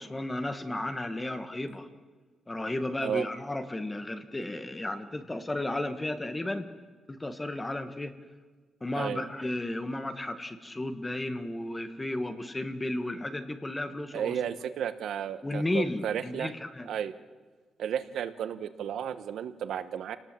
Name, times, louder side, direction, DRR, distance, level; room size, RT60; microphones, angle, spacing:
voice 1, 0.0-1.9 2.5-6.7 7.1-8.1 8.8-14.4 15.4-16.9, left 1 dB, 10° left, 9 dB, 1.3 m, -33 dB
voice 2, 14.1-16.5 16.9-17.1 17.8-20.2, right 9 dB, 70° right, 12 dB, 1.1 m, -33 dB
28.5 x 19.0 x 7.5 m, 1.4 s
wide cardioid pair, 170°, 0 cm